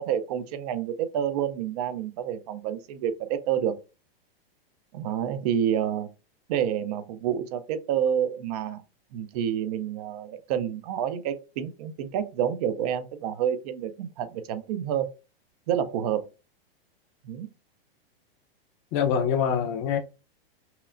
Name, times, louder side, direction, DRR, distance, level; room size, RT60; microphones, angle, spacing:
voice 1, 0.0-3.7 4.9-6.1 6.5-8.8 9.1-15.1 15.7-16.3 17.2-17.5, right 9 dB, 40° right, 0.5 m, -28 dB
voice 2, 18.9-20.0, left 7 dB, 30° left, 0.7 m, -24 dB
5.6 x 2.0 x 2.5 m
hypercardioid pair, 145°, 30 cm